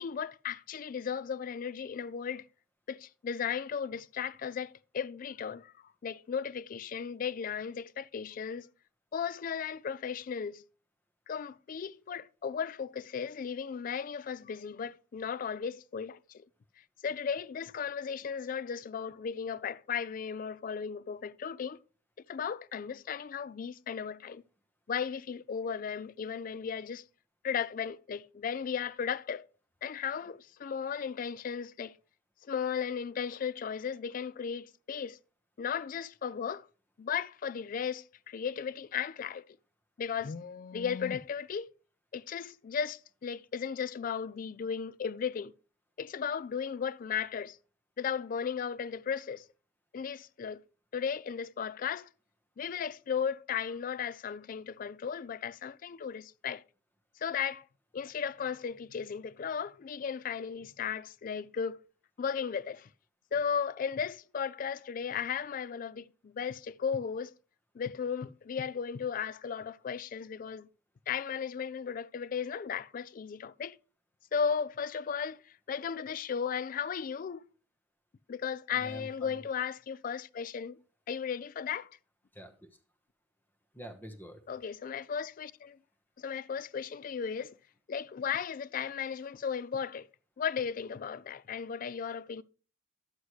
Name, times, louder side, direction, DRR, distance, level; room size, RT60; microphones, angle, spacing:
voice 1, 0.0-2.5 2.9-5.7 6.0-8.7 9.1-10.6 11.3-16.5 17.0-21.8 22.3-24.4 24.9-27.0 27.4-29.4 29.8-31.9 32.4-35.2 35.6-36.7 37.0-39.4 40.0-41.7 42.1-45.5 46.0-47.6 48.0-49.4 49.9-50.6 50.9-52.1 52.6-56.6 57.2-57.6 57.9-61.8 62.2-62.9 63.3-67.3 67.7-70.7 71.1-73.8 74.3-77.5 78.3-80.8 81.1-81.9 84.5-85.8 86.2-87.5 87.9-90.1 90.4-92.4, left 7 dB, 45° left, 0.3 m, -35 dB
voice 2, 78.7-79.4 82.3-82.7 83.7-84.4, equal, 10° left, 1.0 m, -46 dB
11.0 x 8.2 x 3.1 m
head